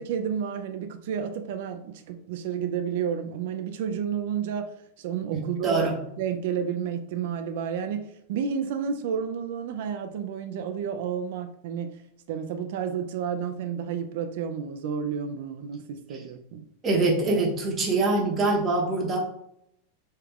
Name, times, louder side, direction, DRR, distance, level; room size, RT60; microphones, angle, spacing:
voice 1, 0.0-4.7 5.0-5.9 6.2-11.9 12.3-16.6, right 7 dB, 60° right, 8 dB, 0.3 m, -31 dB
voice 2, 5.3-6.0 16.8-19.2, right 3 dB, 15° right, -1 dB, 0.7 m, -24 dB
3.2 x 2.3 x 3.4 m, 0.73 s
supercardioid pair, 155°, 0 cm